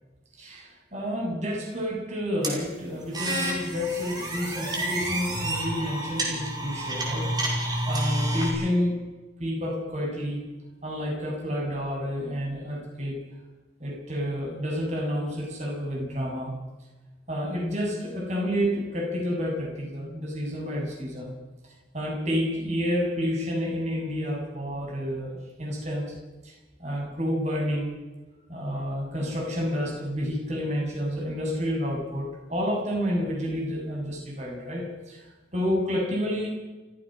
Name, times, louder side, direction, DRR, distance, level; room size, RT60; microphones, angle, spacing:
voice 1, 0.4-7.3 7.9-9.1 9.4-10.5 10.8-13.2 13.8-16.5 17.3-21.3 21.9-26.1 26.4-26.5 26.8-27.9 28.5-35.2 35.5-36.5, equal, 40° right, 0 dB, 7.7 m, -29 dB
sound 1, 2.4-8.5, right 1 dB, 20° right, 5.3 m, -29 dB
29.5 x 15.0 x 6.5 m, 1.2 s
head